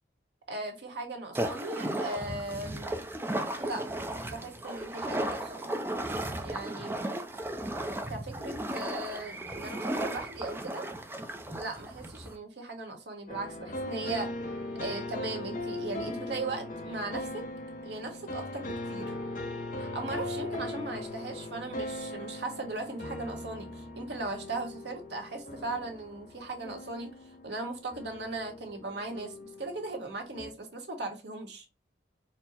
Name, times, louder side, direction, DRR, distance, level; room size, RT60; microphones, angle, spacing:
voice 1, 0.5-3.1 3.6-5.7 6.4-7.2 8.1-10.9 11.5-14.3 14.8-17.4 17.8-19.1 19.8-27.1 27.4-31.6, right 2 dB, 65° right, 3 dB, 1.1 m, -38 dB
sound 1, 1.3-12.4, right 1 dB, 10° right, 0.4 m, -35 dB
sound 2, 13.3-30.5, left 1 dB, 45° left, 0.7 m, -39 dB
4.3 x 2.1 x 4.1 m, 0.28 s
head